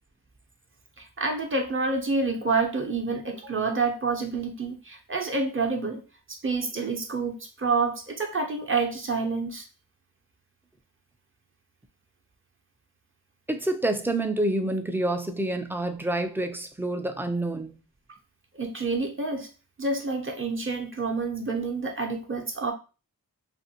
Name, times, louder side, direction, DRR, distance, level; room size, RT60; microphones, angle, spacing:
voice 1, 1.0-6.0 6.3-9.7 18.5-19.5 19.8-22.7, right 4 dB, 35° right, 3 dB, 0.7 m, -28 dB
voice 2, 13.5-17.8, right 1 dB, 5° right, 7 dB, 0.3 m, -28 dB
2.5 x 2.5 x 2.8 m, 0.32 s
cardioid pair, 65°, 35 cm